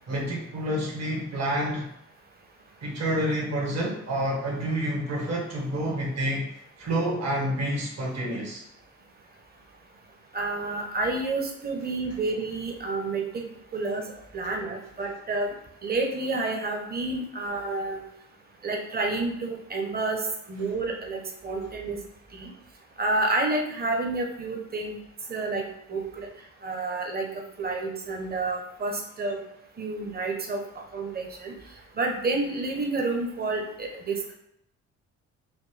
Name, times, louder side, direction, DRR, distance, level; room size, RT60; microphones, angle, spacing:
voice 1, 0.1-1.9 2.8-6.5 6.8-8.6, right 1 dB, 60° right, -2 dB, 1.5 m, -28 dB
voice 2, 10.3-13.4 13.7-15.5 15.8-18.0 18.6-22.0 22.3-22.5 23.0-24.9 25.3-26.3 26.6-29.4 29.8-30.6 30.9-31.5 31.9-34.3, right 3 dB, 30° right, 2 dB, 0.9 m, -29 dB
5.1 x 2.2 x 3.3 m, 0.77 s
cardioid pair, 90°, 30 cm